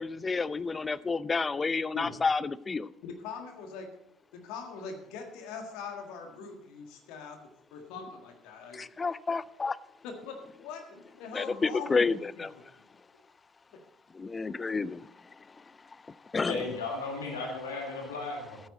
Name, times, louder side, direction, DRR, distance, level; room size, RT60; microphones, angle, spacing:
voice 1, 0.0-2.9 8.7-9.8 11.3-12.5 14.1-15.0 16.3-16.6, left 4 dB, 25° left, 0.4 m, -30 dB
voice 2, 3.0-3.9 4.3-8.8 10.0-12.6, left 5 dB, 60° left, 1.6 m, -42 dB
voice 3, 16.5-18.6, left 3 dB, 75° left, 2.1 m, -35 dB
13.5 x 9.3 x 4.0 m
figure-of-eight pair, 55°, 0 cm